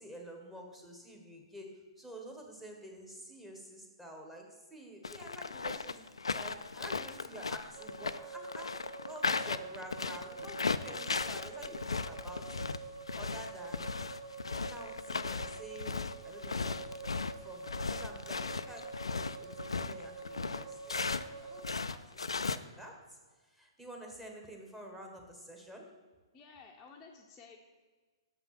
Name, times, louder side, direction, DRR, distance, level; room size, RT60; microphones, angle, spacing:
voice 1, 0.0-6.0 6.3-12.6 13.1-13.9 14.5-25.9, right 1 dB, 5° right, 1 dB, 1.4 m, -50 dB
sound 1, 5.0-21.3 21.6-22.6, left 4 dB, 85° left, 0.4 m, -36 dB
sound 2, 7.7-21.7, right 5 dB, 30° right, 0.7 m, -47 dB
voice 2, 26.3-27.6, left 5 dB, 15° left, -3 dB, 0.8 m, -54 dB
6.9 x 5.8 x 5.9 m, 1.4 s
hypercardioid pair, 125°, 3 cm